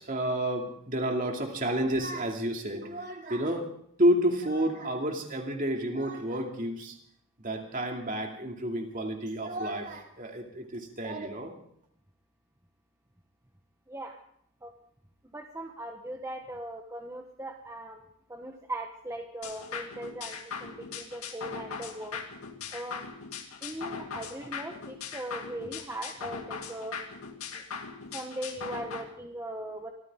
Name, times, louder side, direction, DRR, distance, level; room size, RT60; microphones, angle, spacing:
voice 1, 0.0-3.7 4.0-7.0 7.4-11.5, right 1 dB, 35° right, 2 dB, 2.5 m, -30 dB
voice 2, 15.3-18.0 18.3-22.2 22.7-23.0 23.6-27.0 27.5-27.6 28.1-29.9, right 1 dB, 15° right, 3 dB, 1.1 m, -39 dB
sound 1, 19.4-29.0, left 6 dB, 85° left, 2.2 m, -40 dB
24.5 x 14.0 x 3.7 m, 0.66 s
head